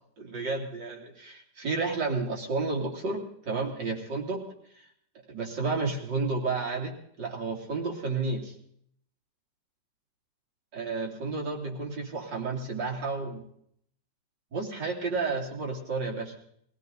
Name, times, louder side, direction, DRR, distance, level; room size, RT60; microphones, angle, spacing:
voice 1, 0.2-4.4 5.3-8.5 10.7-13.4 14.5-16.3, right 3 dB, 85° right, 0 dB, 3.7 m, -31 dB
22.0 x 16.5 x 4.0 m, 0.67 s
omnidirectional pair, 1.9 m